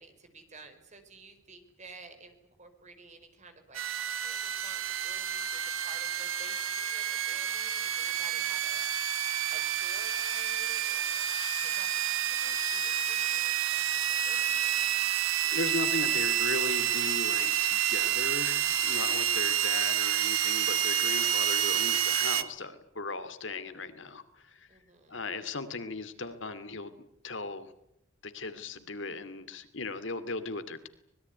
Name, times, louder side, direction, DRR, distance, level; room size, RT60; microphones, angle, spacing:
voice 1, 0.0-11.9 12.1-15.2 24.7-25.2, right 3 dB, 35° right, 7 dB, 4.8 m, -53 dB
sound 1, 3.7-22.4, right 10 dB, 80° right, 1.6 m, -29 dB
voice 2, 15.4-24.7 25.1-27.7 28.2-30.9, left 3 dB, 65° left, 11 dB, 2.4 m, -37 dB
25.0 x 21.0 x 9.5 m, 0.77 s
head